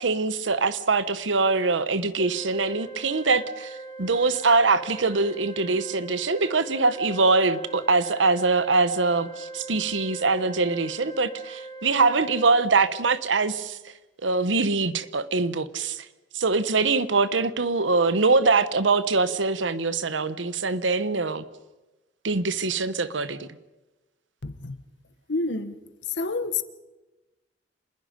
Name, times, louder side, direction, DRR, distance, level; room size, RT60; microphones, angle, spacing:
voice 1, 0.0-13.8 14.2-16.0 16.3-21.4 22.2-23.5, right 3 dB, 85° right, 1.1 m, -23 dB
Organ, 2.2-13.2, right 3 dB, 25° left, 2.2 m, -41 dB
voice 2, 24.4-24.8 25.3-25.8 26.2-26.6, left 3 dB, 70° left, 1.3 m, -28 dB
27.0 x 20.5 x 5.2 m
head